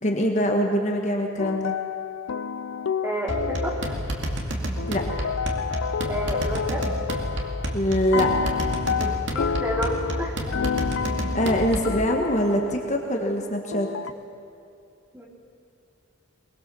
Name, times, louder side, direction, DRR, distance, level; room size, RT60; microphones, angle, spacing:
voice 1, 0.0-1.7 4.9-5.0 7.7-8.3 11.3-13.9, equal, 35° left, 2 dB, 1.5 m, -23 dB
sound 1, 1.4-4.4 4.8-7.8 8.1-13.1 13.7-14.1, left 6 dB, 75° left, 0.5 m, -30 dB
voice 2, 3.0-3.7 6.0-6.8 9.0-10.4 15.1-15.3, equal, 10° right, -1 dB, 2.8 m, -30 dB
sound 2, 3.3-12.0, equal, 60° right, 2.4 m, -30 dB
22.5 x 20.5 x 7.0 m, 2.7 s
head